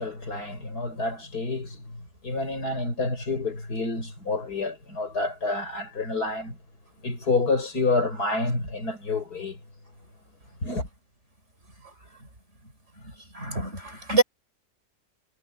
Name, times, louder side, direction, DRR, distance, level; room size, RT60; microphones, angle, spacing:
voice 1, 0.0-6.6 7.0-9.6 10.6-10.9, left 3 dB, 75° left, 6.1 m, -28 dB
voice 2, 13.3-14.2, right 3 dB, 45° right, 5.7 m, -25 dB
omnidirectional pair, 1.7 m